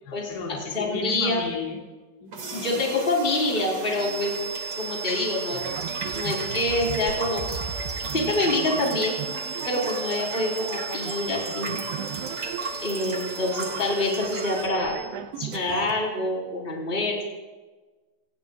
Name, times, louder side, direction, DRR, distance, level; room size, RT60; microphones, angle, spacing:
voice 1, 0.0-1.8 2.2-2.8, left 5 dB, 70° left, -2 dB, 4.6 m, -35 dB
voice 2, 0.7-1.4 2.6-4.3 4.8-5.6 6.1-7.4 8.1-9.2 9.7-11.8 12.8-15.0 15.4-17.2, left 2 dB, 10° left, -2 dB, 4.1 m, -26 dB
sound 1, 2.3-14.7, right 2 dB, 40° right, 2.3 m, -36 dB
sound 2, 4.0-15.1, right 6 dB, 65° right, 6.8 m, -36 dB
sound 3, 5.5-15.9, right 8 dB, 80° right, 2.8 m, -37 dB
28.0 x 19.0 x 2.5 m, 1.2 s
omnidirectional pair, 5.3 m